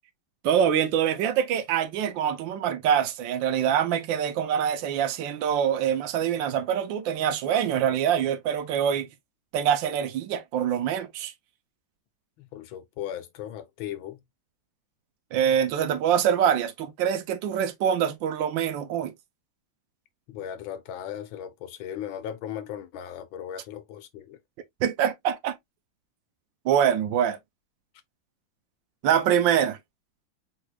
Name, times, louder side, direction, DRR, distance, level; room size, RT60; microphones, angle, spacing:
voice 1, 0.4-9.1 9.5-11.3 15.3-19.1 24.8-25.6 26.6-27.4 29.0-29.8, right 9 dB, 75° right, 1.5 m, -24 dB
voice 2, 12.4-14.2 20.3-24.4, left 10 dB, 90° left, 1.7 m, -37 dB
4.8 x 4.7 x 2.3 m
omnidirectional pair, 2.1 m